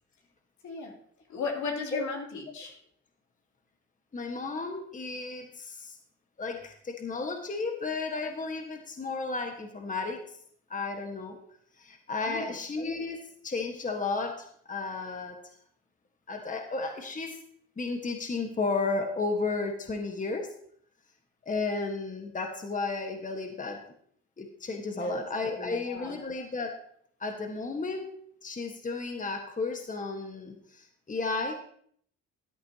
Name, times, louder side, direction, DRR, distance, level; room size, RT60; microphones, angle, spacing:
voice 1, 0.6-0.9 1.3-2.8 12.2-12.5 24.9-26.2, left 4 dB, 75° left, 0 dB, 2.9 m, -36 dB
voice 2, 4.1-6.0 6.4-10.2 10.7-11.4 11.8-15.5 16.3-17.4 17.8-20.5 21.4-23.8 24.4-26.8 27.2-28.1 28.4-31.5, left 3 dB, 25° left, 4 dB, 1.4 m, -33 dB
14.0 x 10.5 x 2.8 m, 0.63 s
cardioid pair, 90°, 30 cm